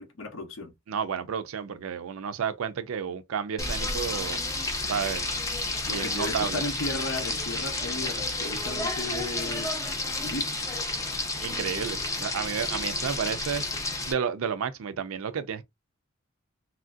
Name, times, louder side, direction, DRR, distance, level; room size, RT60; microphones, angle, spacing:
voice 1, 0.0-0.7 5.9-9.7 10.2-10.8, left 3 dB, 70° left, 0.7 m, -35 dB
voice 2, 0.9-4.4 4.9-5.3 5.9-6.6 11.4-13.6 14.1-15.6, right 7 dB, 80° right, 0.4 m, -31 dB
Frying (food), 3.6-14.1, left 2 dB, 15° left, 0.5 m, -31 dB
3.0 x 2.5 x 2.4 m
head